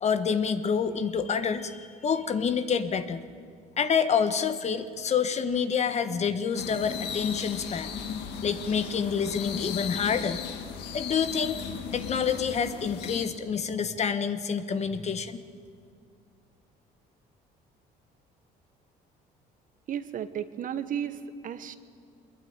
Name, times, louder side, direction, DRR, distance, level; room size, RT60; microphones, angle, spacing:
voice 1, 0.0-3.2 3.8-7.9 8.4-10.4 10.9-11.6 11.9-15.4, left 6 dB, 40° left, 10 dB, 1.3 m, -27 dB
sound 1, 6.6-13.3, left 7 dB, 85° left, 2.0 m, -36 dB
voice 2, 19.9-21.8, right 9 dB, 55° right, 11 dB, 1.2 m, -34 dB
23.0 x 21.0 x 9.6 m, 2.2 s
cardioid pair, 110°, 17 cm